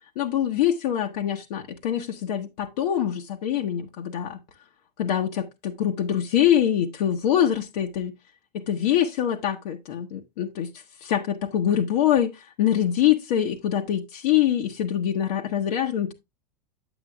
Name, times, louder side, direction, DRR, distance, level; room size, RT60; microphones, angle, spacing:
voice 1, 0.2-4.4 5.0-8.1 8.7-10.7 11.1-12.3 12.6-16.1, left 10 dB, 65° left, 1.1 m, -24 dB
8.8 x 8.2 x 2.4 m
hypercardioid pair, 105°, 21 cm